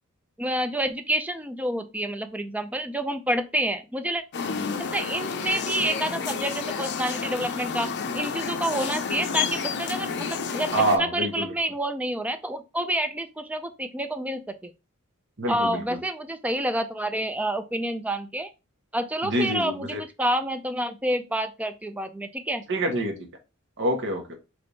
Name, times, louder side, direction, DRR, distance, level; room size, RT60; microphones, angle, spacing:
voice 1, 0.4-4.2 4.8-10.7 11.0-14.7 15.5-18.5 18.9-22.6, right 1 dB, 5° right, 0.4 m, -28 dB
sound 1, 4.3-11.0, left 5 dB, 50° left, 0.5 m, -30 dB
voice 2, 10.7-11.5 15.4-15.8 19.2-20.0 22.7-23.1 23.8-24.4, right 1 dB, 60° right, 1.1 m, -26 dB
3.5 x 3.3 x 3.9 m
head